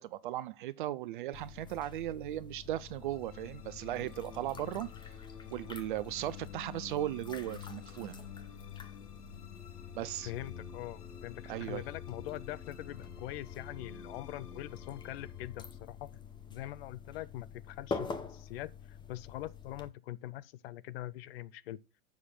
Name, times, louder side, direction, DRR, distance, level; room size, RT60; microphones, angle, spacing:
voice 1, 0.0-4.9 5.5-8.2 9.9-10.3 11.5-11.8, right 13 dB, 35° right, 0.4 m, -37 dB
sound 1, 1.3-19.9, left 5 dB, 10° left, 0.8 m, -47 dB
sound 2, 2.9-17.3, left 6 dB, 85° left, 1.1 m, -50 dB
voice 2, 10.2-16.2 16.5-21.8, left 14 dB, 40° left, 0.6 m, -43 dB
7.2 x 6.2 x 5.7 m
hypercardioid pair, 105°, 45 cm